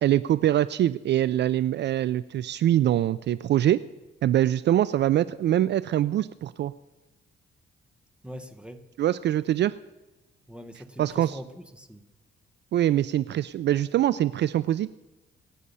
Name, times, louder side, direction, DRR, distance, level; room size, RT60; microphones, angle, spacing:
voice 1, 0.0-3.8 4.2-6.7 9.0-9.7 11.0-11.4 12.7-14.9, right 12 dB, 60° right, 17 dB, 0.4 m, -23 dB
voice 2, 8.2-8.9 10.5-12.0, equal, 5° right, 8 dB, 1.3 m, -42 dB
25.5 x 8.6 x 5.5 m, 1.1 s
cardioid pair, 125°, 20 cm